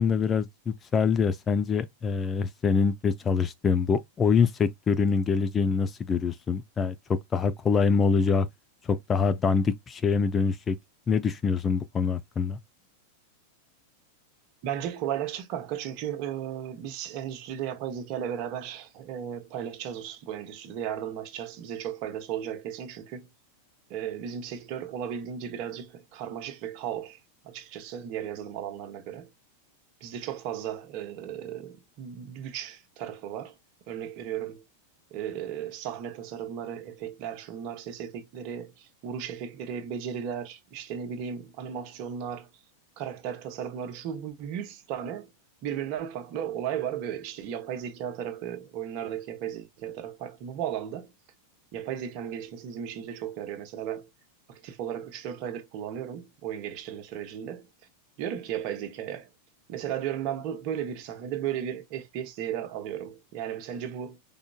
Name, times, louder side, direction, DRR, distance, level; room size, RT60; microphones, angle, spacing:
voice 1, 0.0-7.0 7.3-8.5 8.9-10.8 11.1-12.6, left 5 dB, 20° left, 0.4 m, -25 dB
voice 2, 14.6-23.3 23.9-29.3 30.0-33.6 33.9-34.6 35.1-42.5 43.0-45.3 45.6-51.1 51.7-54.1 54.5-57.7 58.2-59.3 59.7-64.2, right 9 dB, 45° right, 1.0 m, -35 dB
5.0 x 3.5 x 2.3 m
figure-of-eight pair, 90°, 0 cm